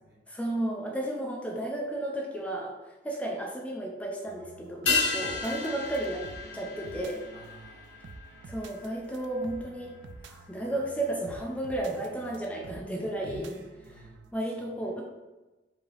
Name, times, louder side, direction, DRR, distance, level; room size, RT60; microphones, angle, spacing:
voice 1, 0.3-6.2 6.5-7.2 8.5-10.0 10.3-13.5 14.3-15.0, right 1 dB, 10° left, -1 dB, 0.5 m, -33 dB
sound 1, 4.3-14.3, right 3 dB, 80° right, 0.4 m, -49 dB
sound 2, 4.9-9.6 9.8-9.9, left 4 dB, 90° left, 1.0 m, -33 dB
voice 2, 7.3-8.0 13.2-14.3 14.6-14.9, equal, 60° right, -4 dB, 1.2 m, -50 dB
4.7 x 2.8 x 3.3 m, 1.1 s
head